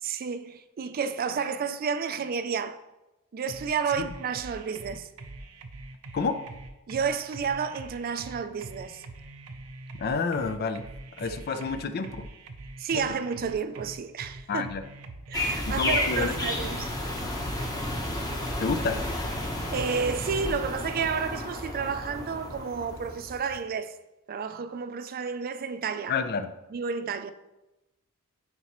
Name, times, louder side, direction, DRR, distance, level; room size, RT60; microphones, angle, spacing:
voice 1, 0.0-2.8 3.3-5.1 6.9-9.0 11.3-11.6 12.8-14.7 15.3-16.9 19.7-23.9 24.3-26.2 26.7-27.3, right 6 dB, 40° right, 0.4 m, -31 dB
sound 1, 3.5-20.4, right 2 dB, 75° right, 0.7 m, -44 dB
voice 2, 10.0-10.9 11.2-12.3 12.9-13.0 14.5-14.8 15.7-16.3 18.6-19.0 26.1-26.5, left 5 dB, 45° left, 0.4 m, -29 dB
sound 2, 15.3-23.6, left 1 dB, 15° left, 1.0 m, -32 dB
9.5 x 4.1 x 3.0 m
head